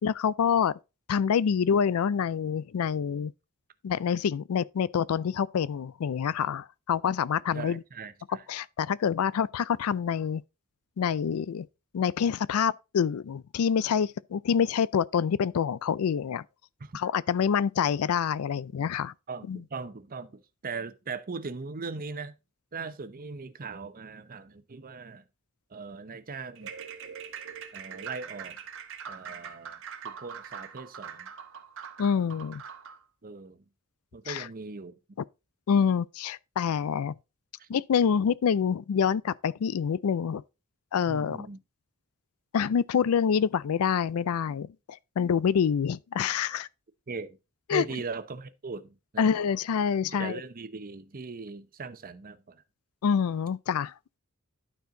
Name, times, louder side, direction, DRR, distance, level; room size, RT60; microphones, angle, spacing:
voice 1, 0.0-0.8 1.1-3.3 3.8-7.8 8.5-10.4 11.0-11.7 11.9-16.4 16.9-19.1 19.5-19.6 32.0-32.6 34.3-34.5 35.7-37.1 37.7-40.4 40.9-41.5 42.5-46.7 47.7-47.8 49.2-50.4 53.0-53.9, left 7 dB, 75° left, 0.4 m, -26 dB
voice 2, 7.5-8.5 16.8-17.0 19.3-22.3 22.7-25.2 25.7-26.7 27.7-28.6 29.1-29.8 30.0-31.3 33.2-33.6 34.1-35.0 37.6-37.7 41.1-41.6 47.1-47.4 47.7-49.3 50.0-52.6, right 4 dB, 40° right, 0.7 m, -39 dB
sound 1, 26.6-33.0, right 7 dB, 60° right, 1.2 m, -42 dB
12.0 x 4.5 x 3.8 m
head